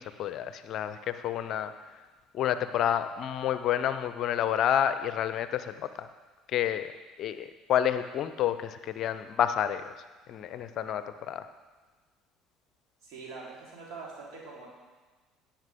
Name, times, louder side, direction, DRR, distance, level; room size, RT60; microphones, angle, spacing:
voice 1, 0.0-1.7 2.3-6.1 6.5-6.9 7.2-9.9 10.3-11.4, left 10 dB, 50° left, 12 dB, 0.6 m, -29 dB
voice 2, 13.0-14.7, right 4 dB, 55° right, -4 dB, 3.7 m, -43 dB
18.0 x 7.2 x 3.6 m, 1.3 s
figure-of-eight pair, 55°, 0 cm